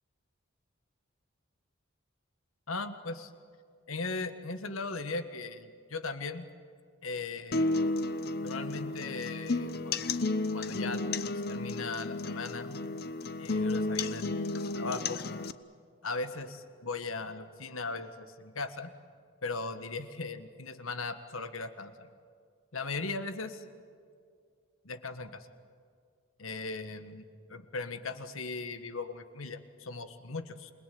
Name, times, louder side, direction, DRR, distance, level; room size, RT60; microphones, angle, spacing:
voice 1, 2.7-3.3 3.9-6.5 7.0-7.7 8.4-10.1 10.5-11.0 11.3-12.8 13.4-14.2 14.7-15.2 16.0-18.9 19.4-22.1 22.7-23.6 24.8-25.5 26.4-27.2 27.5-30.7, left 3 dB, 80° left, 9 dB, 1.6 m, -38 dB
sound 1, 7.5-15.5, left 2 dB, 45° left, 0.7 m, -32 dB
28.5 x 20.5 x 9.5 m, 2.1 s
head